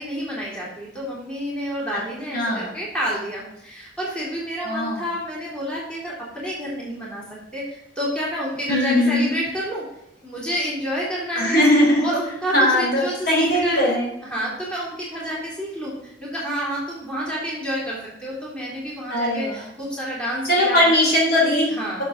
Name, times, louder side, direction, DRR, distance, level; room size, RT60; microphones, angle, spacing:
voice 1, 0.0-7.2 7.5-9.8 10.2-11.7 12.0-14.0 14.2-20.9 21.7-22.0, equal, 5° left, -5 dB, 3.2 m, -29 dB
voice 2, 2.3-2.7 4.6-5.0 8.7-9.4 11.3-12.0 12.5-14.1 19.1-19.6 20.5-21.7, left 1 dB, 60° left, -3 dB, 4.0 m, -19 dB
11.5 x 6.8 x 3.8 m, 0.84 s
head